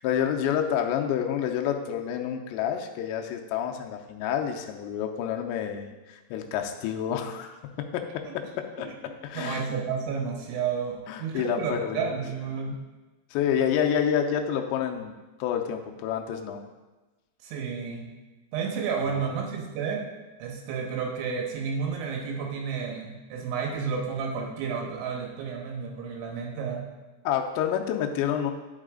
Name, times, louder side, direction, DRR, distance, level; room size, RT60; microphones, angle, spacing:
voice 1, 0.0-7.6 7.9-8.2 8.8-8.9 9.2-9.7 11.1-12.1 13.3-15.1 15.4-16.6 19.1-19.2 27.2-28.5, left 9 dB, 85° left, 4 dB, 2.8 m, -28 dB
voice 2, 8.8-12.8 17.4-18.1 18.5-20.0 20.4-26.9, right 6 dB, 85° right, 0 dB, 3.6 m, -31 dB
10.5 x 5.6 x 3.7 m, 1.2 s
omnidirectional pair, 5.3 m